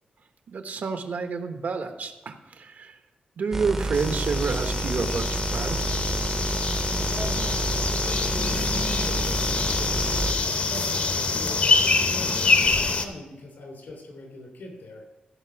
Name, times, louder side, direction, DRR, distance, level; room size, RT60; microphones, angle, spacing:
voice 1, 0.5-3.0 3.4-5.8, right 5 dB, 65° right, 7 dB, 1.0 m, -29 dB
sound 1, 3.5-10.3, right 2 dB, 15° right, 0.6 m, -29 dB
sound 2, 3.9-13.1, left 4 dB, 45° left, 0.8 m, -25 dB
voice 2, 7.1-15.0, left 1 dB, 80° left, 1 dB, 3.1 m, -41 dB
15.0 x 5.3 x 5.9 m, 1.1 s
wide cardioid pair, 145°, 3 cm